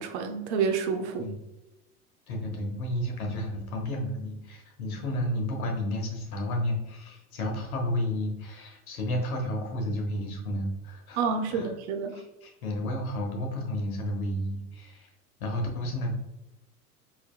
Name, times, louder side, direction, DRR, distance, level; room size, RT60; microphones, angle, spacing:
voice 1, 0.0-1.3 11.2-12.2, right 5 dB, 45° right, 6 dB, 0.6 m, -29 dB
voice 2, 2.3-11.7 12.1-15.1 15.4-16.1, left 1 dB, 65° left, 2 dB, 1.2 m, -32 dB
4.4 x 3.5 x 2.4 m, 0.96 s
figure-of-eight pair, 80°, 46 cm